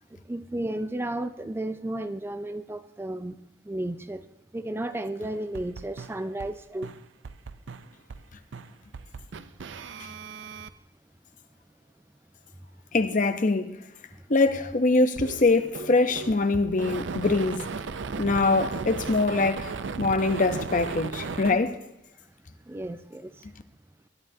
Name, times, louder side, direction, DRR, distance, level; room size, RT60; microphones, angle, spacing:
voice 1, 0.3-3.3 3.7-4.2 4.5-6.9 21.5-21.6 22.7-23.3, right 1 dB, 15° right, 0.4 m, -33 dB
sound 1, 5.2-6.5 6.8-8.2 8.5-10.7 15.1-21.5, right 4 dB, 80° right, 0.6 m, -36 dB
voice 2, 12.9-13.7 14.3-17.6 18.2-19.7 20.0-21.7, left 3 dB, 45° left, 0.7 m, -23 dB
20.0 x 11.0 x 2.7 m
head